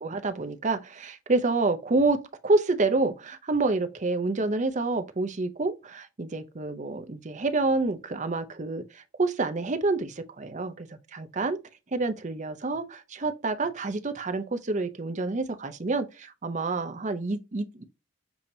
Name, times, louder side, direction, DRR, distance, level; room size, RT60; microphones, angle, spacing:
voice 1, 0.0-11.6 11.9-17.8, right 3 dB, 35° right, 0.6 m, -28 dB
6.9 x 2.9 x 2.6 m
head